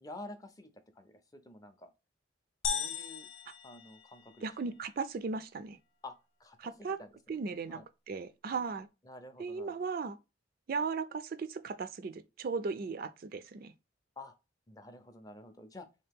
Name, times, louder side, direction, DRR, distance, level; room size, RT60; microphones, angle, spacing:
voice 1, 0.0-1.9 2.7-3.3 3.6-4.5 6.0-6.1 6.4-7.4 7.7-7.8 9.1-9.7 14.2-14.3 14.7-15.9, left 2 dB, 20° left, 0.4 m, -49 dB
sound 1, 2.6-4.6, left 6 dB, 70° left, 0.6 m, -37 dB
voice 2, 4.4-5.8 6.6-7.0 7.3-7.8 8.1-8.9 9.4-10.2 10.7-13.7, right 4 dB, 45° right, 0.3 m, -36 dB
3.6 x 2.8 x 3.4 m
head